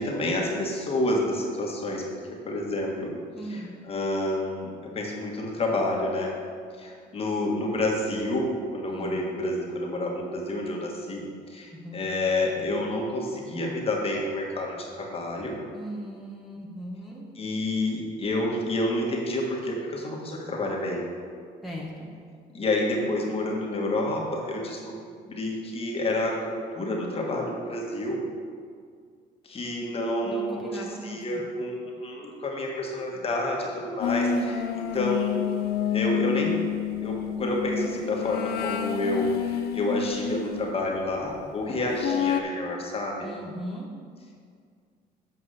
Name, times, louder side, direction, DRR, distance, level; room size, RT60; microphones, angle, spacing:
voice 1, 0.0-2.0 2.3-3.2 3.4-6.3 6.8-11.2 11.5-15.6 17.3-21.1 22.5-25.0 25.2-28.2 29.4-35.4 35.9-36.6 37.0-43.3, left 1 dB, 35° left, -1 dB, 1.7 m, -29 dB
voice 2, 3.3-3.7 8.9-9.2 11.7-12.0 15.7-17.2 21.6-22.1 30.2-31.4 43.2-43.9, equal, ahead, -4 dB, 1.3 m, -38 dB
sound 1, 34.0-40.6 42.0-42.4, left 9 dB, 70° left, 0.6 m, -28 dB
7.6 x 5.3 x 6.6 m, 2.1 s
cardioid pair, 110°, 17 cm